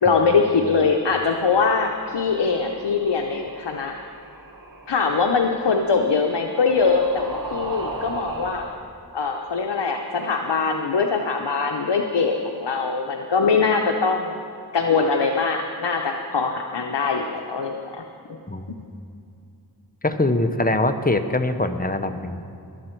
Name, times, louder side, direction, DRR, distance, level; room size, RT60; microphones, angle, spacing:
voice 1, 0.0-3.9 4.9-8.6 9.1-14.3 14.7-18.4, left 4 dB, 80° left, 3 dB, 0.8 m, -22 dB
sound 1, 2.0-8.7, right 2 dB, 50° right, 1.6 m, -37 dB
voice 2, 18.5-18.8 20.0-22.4, left 2 dB, 20° left, 8 dB, 0.8 m, -23 dB
21.0 x 7.6 x 4.5 m, 2.5 s
wide cardioid pair, 40°, 42 cm